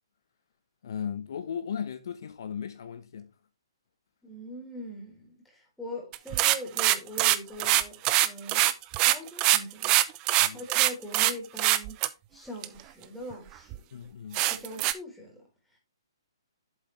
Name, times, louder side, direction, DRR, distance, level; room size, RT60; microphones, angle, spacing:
voice 1, 0.8-3.3 10.4-10.6 13.9-14.4, left 7 dB, 60° left, 1.0 m, -36 dB
voice 2, 4.2-8.7 9.0-10.0 10.5-12.0 12.3-13.8 14.5-15.4, equal, ahead, 3.9 m, -42 dB
sound 1, 6.1-11.3 11.6-12.1 12.6-12.7 13.3-13.4 13.7-13.8 14.3-14.9, right 16 dB, 30° right, 0.6 m, -23 dB
7.7 x 7.7 x 3.3 m
figure-of-eight pair, 130°, 2 cm